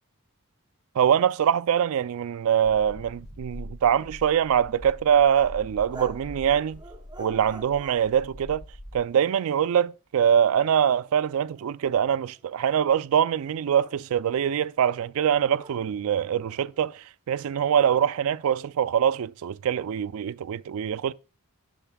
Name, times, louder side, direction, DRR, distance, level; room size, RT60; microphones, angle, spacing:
voice 1, 1.0-6.8 7.2-8.6 8.9-21.1, right 8 dB, 70° right, 0.3 m, -23 dB
sound 1, 2.6-9.1, left 1 dB, 75° left, 2.6 m, -43 dB
sound 2, 5.3-5.6 5.9-8.1 9.0-9.8 10.8-12.7 13.5-14.7 15.6-16.9, right 3 dB, 20° right, 0.8 m, -46 dB
11.5 x 6.8 x 2.2 m
head